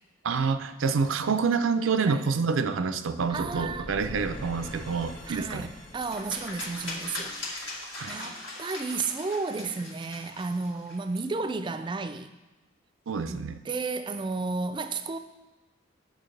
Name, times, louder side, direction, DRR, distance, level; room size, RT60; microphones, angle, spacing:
voice 1, 0.2-5.7 8.0-8.1 13.1-13.6, right 5 dB, 90° right, 0.5 m, -27 dB
sound 1, 3.1-8.1, equal, 45° left, 1.1 m, -44 dB
voice 2, 3.3-3.9 5.3-7.7 8.1-12.3 13.3-15.2, right 4 dB, 25° right, 0.4 m, -33 dB
sound 2, 6.0-11.2, left 2 dB, 70° left, 1.6 m, -40 dB
9.0 x 6.5 x 3.2 m
head